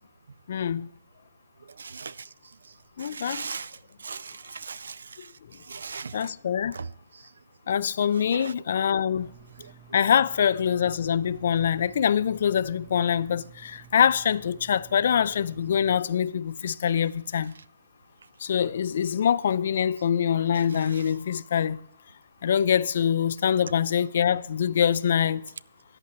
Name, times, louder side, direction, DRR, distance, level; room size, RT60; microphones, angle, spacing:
voice 1, 0.5-0.9 3.0-3.4 6.1-6.8 7.7-9.3 9.9-17.5 18.4-21.9 22.4-25.4, left 8 dB, 60° left, 0.3 m, -24 dB
voice 2, 1.8-2.2 3.0-3.7 4.0-5.0 5.7-6.3 6.7-6.9 8.3-8.5, right 5 dB, 80° right, 0.3 m, -37 dB
sound 1, 9.2-16.0, right 8 dB, 25° right, 0.6 m, -51 dB
13.5 x 9.2 x 3.0 m
hypercardioid pair, 150°, 0 cm